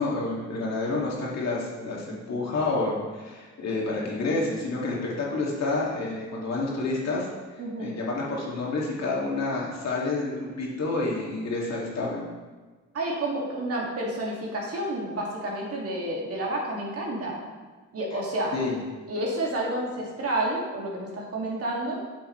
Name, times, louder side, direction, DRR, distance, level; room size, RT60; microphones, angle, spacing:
voice 1, 0.0-12.3 18.5-18.7, left 3 dB, 60° left, -3 dB, 2.1 m, -29 dB
voice 2, 7.6-7.9 12.9-17.4 17.9-18.5 19.1-22.0, right 1 dB, 50° right, -3 dB, 2.1 m, -30 dB
7.6 x 6.9 x 3.2 m, 1.3 s
cardioid pair, 90°, 30 cm